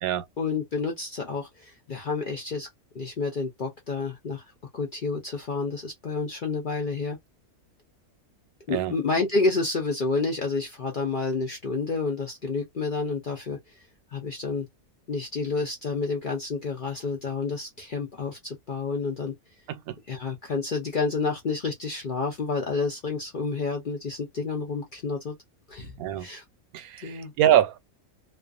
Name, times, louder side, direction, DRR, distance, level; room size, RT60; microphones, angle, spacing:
voice 1, 0.4-2.7 2.9-4.4 4.7-7.2 8.7-13.6 14.1-14.7 15.1-19.3 20.1-25.4 25.7-25.9 26.2-26.4 27.0-27.3, left 4 dB, 60° left, 0.5 m, -29 dB
voice 2, 26.7-27.8, right 11 dB, 85° right, 1.0 m, -24 dB
2.4 x 2.3 x 2.4 m
omnidirectional pair, 1.5 m